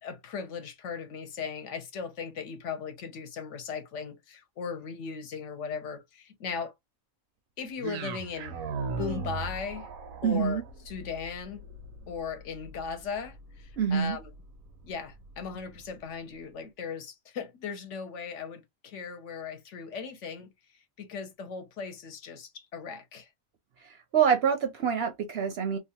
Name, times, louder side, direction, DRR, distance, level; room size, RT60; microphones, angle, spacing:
voice 1, 0.0-6.7 7.6-8.6 8.9-9.9 10.2-11.6 12.1-14.3 14.8-23.3, left 6 dB, 65° left, 1.0 m, -38 dB
sound 1, 7.8-16.0, right 4 dB, 90° right, 1.1 m, -40 dB
voice 2, 10.2-10.6 13.8-14.2 24.1-25.8, right 7 dB, 60° right, 0.7 m, -25 dB
2.8 x 2.3 x 2.7 m
omnidirectional pair, 1.4 m